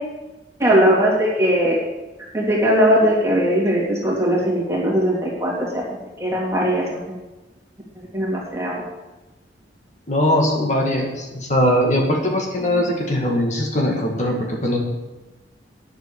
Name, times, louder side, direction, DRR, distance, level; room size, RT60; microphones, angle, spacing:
voice 1, 0.6-1.8 2.3-7.2 8.1-8.8, equal, 15° right, -4 dB, 2.9 m, -19 dB
voice 2, 10.1-14.8, left 1 dB, 40° left, 0 dB, 2.0 m, -20 dB
10.5 x 7.8 x 7.0 m, 1.1 s
head